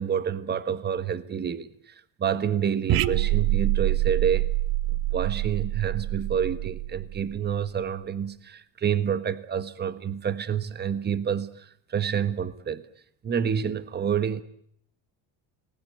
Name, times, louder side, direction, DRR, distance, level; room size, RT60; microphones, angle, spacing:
voice 1, 0.0-4.5 4.9-12.8 13.2-14.4, right 8 dB, 25° right, 1.4 m, -28 dB
sound 1, 2.9-7.5, right 16 dB, 60° right, 1.1 m, -26 dB
29.5 x 20.0 x 8.5 m
cardioid pair, 145°, 41 cm